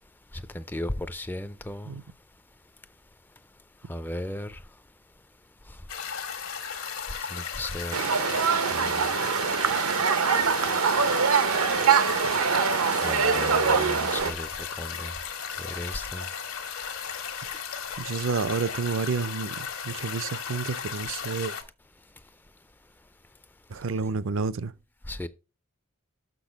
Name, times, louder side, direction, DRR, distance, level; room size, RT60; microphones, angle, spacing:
voice 1, 0.5-1.9 3.9-4.6 7.3-8.0 8.7-9.1 13.0-14.5 14.8-15.1 15.8-16.3 25.1-25.3, left 1 dB, 10° left, 0.3 m, -35 dB
sound 1, 5.9-21.6, left 7 dB, 75° left, 1.4 m, -36 dB
sound 2, 7.9-14.3, right 6 dB, 85° right, 0.8 m, -23 dB
voice 2, 18.0-19.6 19.8-21.5 23.7-24.7, right 4 dB, 60° right, 0.5 m, -29 dB
6.4 x 6.1 x 5.1 m
head